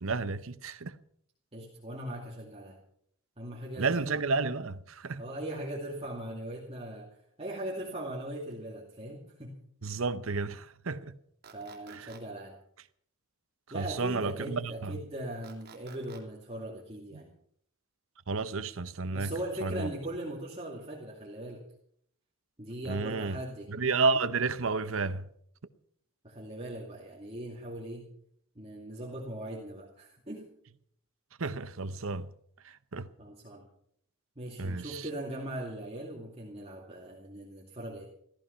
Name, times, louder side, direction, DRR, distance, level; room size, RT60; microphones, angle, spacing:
voice 1, 0.0-1.0 3.8-5.2 9.8-11.2 11.9-12.1 13.7-14.9 18.3-19.3 19.6-19.9 22.8-23.4 23.7-25.2 31.4-32.3 32.6-33.1 34.6-35.0, right 4 dB, 65° right, 0.8 m, -31 dB
voice 2, 1.5-2.8 3.4-4.1 5.2-9.6 11.5-12.6 13.7-17.3 19.1-21.6 22.6-23.7 26.2-28.1 28.6-30.5 33.2-33.7 34.4-38.0, right 1 dB, 25° right, 2.4 m, -39 dB
sound 1, 11.4-12.2 15.4-16.2, right 6 dB, 45° right, 3.1 m, -51 dB
15.5 x 14.5 x 5.7 m
head